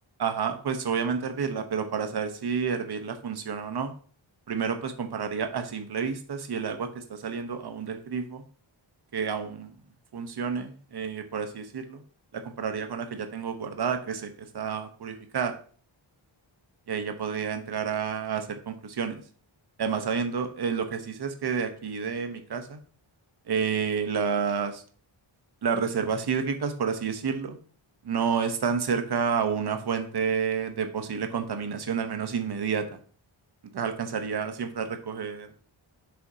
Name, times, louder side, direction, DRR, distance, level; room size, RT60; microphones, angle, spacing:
voice 1, 0.2-3.9 4.5-8.4 9.1-9.7 10.1-12.0 12.3-15.5 16.9-19.2 19.8-22.8 23.5-24.8 25.6-27.6 28.0-32.9 33.7-35.5, right 6 dB, 50° right, 7 dB, 0.9 m, -30 dB
7.8 x 6.8 x 2.7 m, 0.44 s
wide cardioid pair, 150°, 49 cm